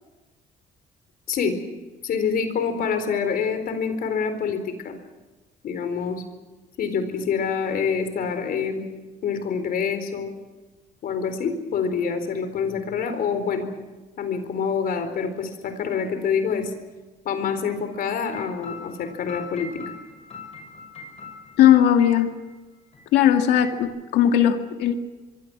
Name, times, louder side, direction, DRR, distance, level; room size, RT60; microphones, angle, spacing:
voice 1, 1.3-1.6 2.0-5.0 5.6-6.2 6.8-8.8 9.2-10.3 11.0-13.7 14.2-16.7 17.2-19.8, left 6 dB, 60° left, 8 dB, 4.2 m, -26 dB
sound 1, 18.3-22.5 22.9-23.0 23.3-23.8, left 4 dB, 40° left, 6.6 m, -41 dB
voice 2, 21.6-22.3 23.1-24.9, left 10 dB, 85° left, 5 dB, 2.2 m, -18 dB
25.0 x 23.5 x 6.2 m, 1.2 s
cardioid pair, 110°, 17 cm